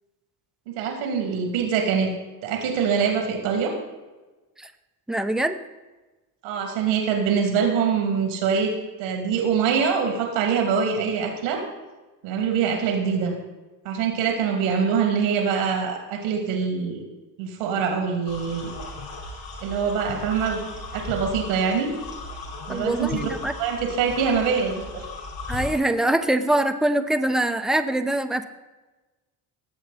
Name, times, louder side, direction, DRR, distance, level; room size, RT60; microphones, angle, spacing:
voice 1, 0.8-2.1 2.4-3.7 6.4-8.7 9.0-11.6 12.2-13.3 13.8-17.0 17.4-18.7 19.6-20.6 20.9-21.9 22.7-23.2 23.6-25.0, right 6 dB, 80° right, 2 dB, 2.8 m, -24 dB
voice 2, 5.1-5.6 22.7-23.5 25.5-28.4, right 1 dB, ahead, 8 dB, 0.8 m, -23 dB
sound 1, 18.3-25.8, left 3 dB, 60° left, 4.8 m, -36 dB
18.0 x 7.6 x 4.2 m, 1.2 s
hypercardioid pair, 60°, 48 cm